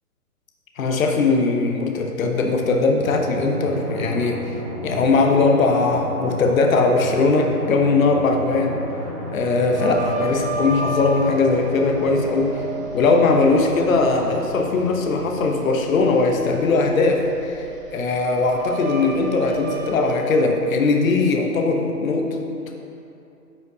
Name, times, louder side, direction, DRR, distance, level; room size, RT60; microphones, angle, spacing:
voice 1, 0.8-4.5 4.8-8.8 9.3-12.6 12.9-17.6 17.9-22.5, left 3 dB, 55° left, 3 dB, 0.8 m, -20 dB
Drum, 3.0-16.1, right 1 dB, 25° right, 0.5 m, -34 dB
sound 1, 9.8-20.1, right 3 dB, 55° right, 0.8 m, -32 dB
9.5 x 5.5 x 2.7 m, 2.7 s
hypercardioid pair, 150°, 48 cm